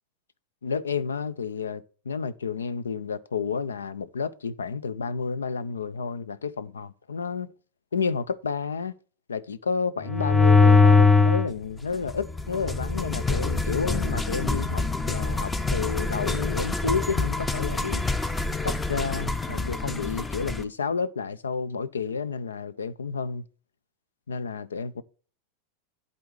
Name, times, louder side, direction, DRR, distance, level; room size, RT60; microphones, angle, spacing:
voice 1, 0.6-7.5 7.9-8.9 9.3-18.0 18.6-23.4 24.3-25.0, left 5 dB, 75° left, 0.5 m, -30 dB
sound 1, 10.1-11.5 12.1-20.6, left 4 dB, 15° left, 0.7 m, -23 dB
11.0 x 4.0 x 4.7 m
figure-of-eight pair, 85°, 0 cm